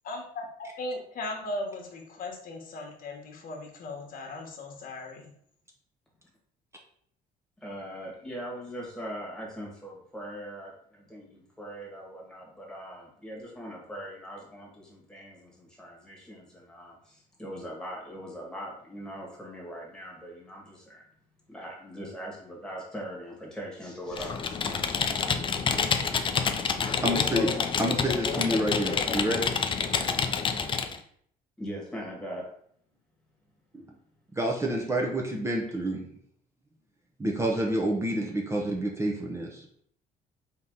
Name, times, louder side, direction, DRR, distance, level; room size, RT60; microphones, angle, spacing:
voice 1, 0.0-0.4 0.8-5.3, left 2 dB, 55° left, 1 dB, 1.1 m, -37 dB
voice 2, 7.6-21.0 21.5-24.9 28.3-28.5 31.6-32.5, equal, 5° left, -3 dB, 1.5 m, -41 dB
Computer keyboard, 24.1-31.0, left 6 dB, 30° left, 0.4 m, -28 dB
voice 3, 27.0-27.5 27.8-29.5 33.7-33.9 34.3-36.0 37.2-39.7, right 1 dB, 15° right, -1 dB, 0.7 m, -28 dB
3.9 x 2.8 x 3.7 m, 0.64 s
cardioid pair, 110°, 17 cm